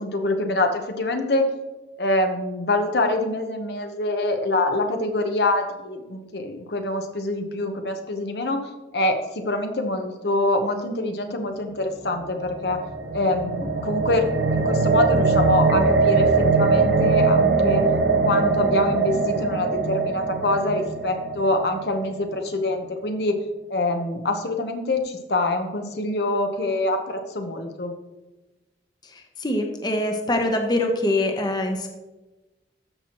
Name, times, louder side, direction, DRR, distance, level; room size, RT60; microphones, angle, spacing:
voice 1, 0.0-1.5 2.0-12.8 13.1-16.3 16.5-17.9 18.2-23.4 23.7-27.9, left 2 dB, 75° left, 6 dB, 0.9 m, -25 dB
sound 1, 12.2-22.3, right 4 dB, 70° right, 0.7 m, -21 dB
voice 2, 29.0-31.9, left 1 dB, 25° left, 4 dB, 0.8 m, -24 dB
13.5 x 5.9 x 3.0 m, 1.1 s
head